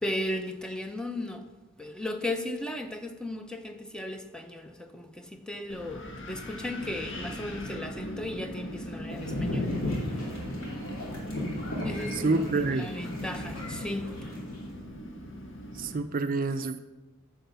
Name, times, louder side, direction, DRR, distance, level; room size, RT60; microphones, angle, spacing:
voice 1, 0.0-1.5 1.8-10.4 11.8-14.3, left 1 dB, 5° left, 0.6 m, -36 dB
Wind, 5.7-16.0, equal, 60° left, 1.8 m, -39 dB
sound 1, 9.1-14.8, left 1 dB, 75° left, 2.7 m, -35 dB
voice 2, 12.1-12.9 15.8-16.8, right 3 dB, 40° right, 0.5 m, -28 dB
10.0 x 4.7 x 6.8 m
head